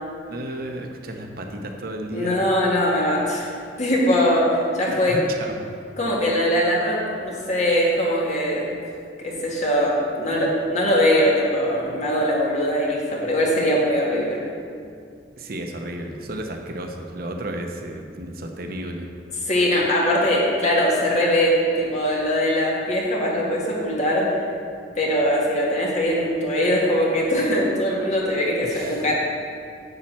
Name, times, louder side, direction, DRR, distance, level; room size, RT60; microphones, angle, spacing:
voice 1, 0.3-2.5 4.9-5.6 15.4-19.1 28.6-29.0, right 1 dB, 55° right, 3 dB, 0.9 m, -33 dB
voice 2, 2.1-3.5 3.8-5.2 6.0-8.7 9.2-14.4 19.4-24.3 25.0-29.1, equal, 40° left, -3 dB, 2.0 m, -21 dB
10.5 x 4.3 x 7.5 m, 2.3 s
head